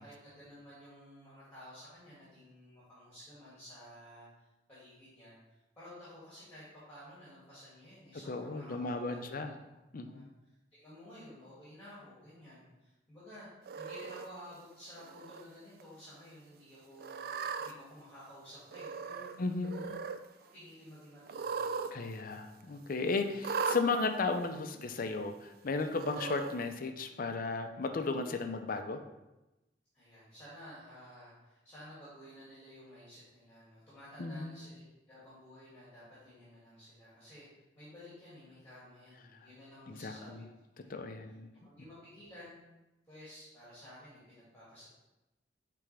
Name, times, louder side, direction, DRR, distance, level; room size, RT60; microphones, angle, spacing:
voice 1, 0.0-9.4 10.1-10.3 10.8-13.5 13.8-17.3 17.6-19.3 19.7-20.1 20.5-21.8 29.9-37.5 37.7-40.5 40.8-41.1 41.6-42.6 43.1-44.9, equal, 10° left, -10 dB, 2.2 m, -53 dB
voice 2, 8.3-9.5 9.9-10.2 19.4-19.8 21.9-29.0 34.2-34.6 39.9-40.1 40.9-41.5, left 3 dB, 50° left, 7 dB, 0.5 m, -35 dB
Cat, 13.7-14.3 15.0-15.4 15.8-15.9 17.0-17.7 18.7-19.4 19.6-20.2 21.3-21.9 22.2-22.3 23.4-23.8 24.7-24.8 25.9-26.5, right 5 dB, 55° right, 0.3 m, -37 dB
8.6 x 3.4 x 3.3 m, 0.99 s
head